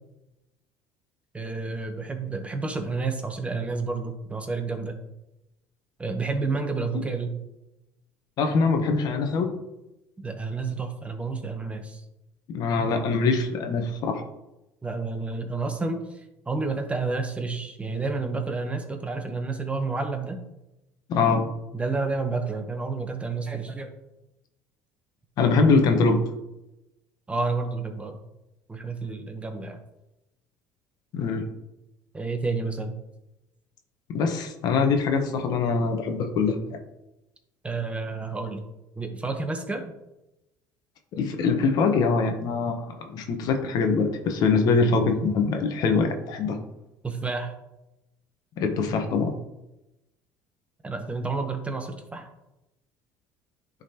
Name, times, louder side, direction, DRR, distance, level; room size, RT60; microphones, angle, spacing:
voice 1, 1.3-4.9 6.0-7.3 10.2-12.0 14.8-20.4 21.7-23.9 27.3-28.2 28.7-29.8 32.1-32.9 37.6-38.6 39.0-39.9 47.0-47.5 50.8-52.3, right 3 dB, 15° right, 5 dB, 0.9 m, -30 dB
voice 2, 8.4-9.5 12.5-14.2 21.1-21.4 25.4-26.2 31.1-31.5 34.1-36.8 41.1-46.6 48.6-49.4, left 4 dB, 60° left, 6 dB, 1.0 m, -23 dB
10.5 x 3.8 x 2.9 m, 0.94 s
supercardioid pair, 95°, 8 cm